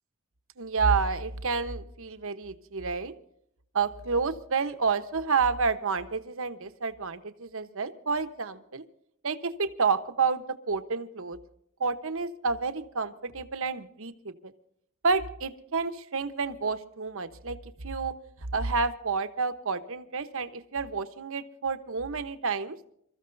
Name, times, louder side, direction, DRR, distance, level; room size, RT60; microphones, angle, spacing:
voice 1, 0.6-3.1 3.7-8.8 9.2-11.4 11.8-14.5 15.0-17.6 17.8-18.1 18.5-22.8, right 4 dB, 65° right, 10 dB, 1.1 m, -29 dB
27.0 x 14.5 x 2.7 m, 0.73 s
head